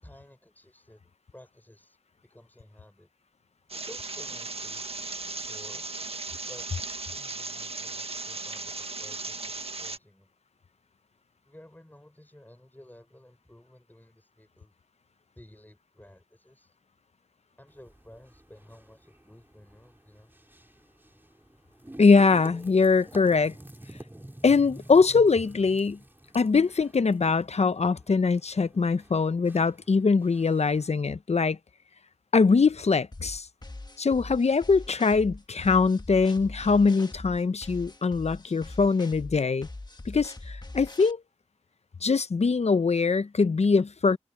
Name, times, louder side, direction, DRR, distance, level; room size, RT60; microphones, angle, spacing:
voice 1, 0.0-3.1 3.7-4.9 5.4-5.9 6.4-6.7 7.1-10.3 11.4-14.8 15.3-16.7 17.6-20.4, left 1 dB, 15° left, 6.3 m, -53 dB
sound 1, 3.7-10.0, right 3 dB, 60° right, 1.5 m, -37 dB
sound 2, 17.7-30.9, right 1 dB, 20° right, 2.5 m, -50 dB
voice 2, 22.0-23.5 24.4-26.0 26.3-31.6 32.3-33.5 34.0-39.7 40.1-41.2 42.0-44.2, left 4 dB, 70° left, 0.7 m, -22 dB
sound 3, 33.1-41.1, left 2 dB, 35° left, 1.5 m, -42 dB
wide cardioid pair, 55°, 12 cm